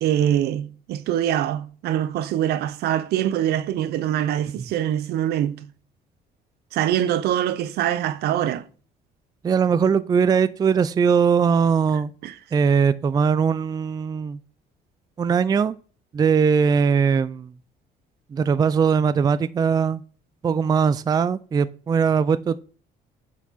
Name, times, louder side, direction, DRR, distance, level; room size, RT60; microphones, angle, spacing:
voice 1, 0.0-5.6 6.7-8.6 12.2-12.3, right 11 dB, 75° right, 0.7 m, -24 dB
voice 2, 9.4-12.1 12.5-14.4 15.2-15.8 16.1-17.5 18.3-20.0 20.4-22.6, right 6 dB, 25° right, 0.3 m, -20 dB
9.2 x 5.0 x 4.1 m
cardioid pair, 110°, 17 cm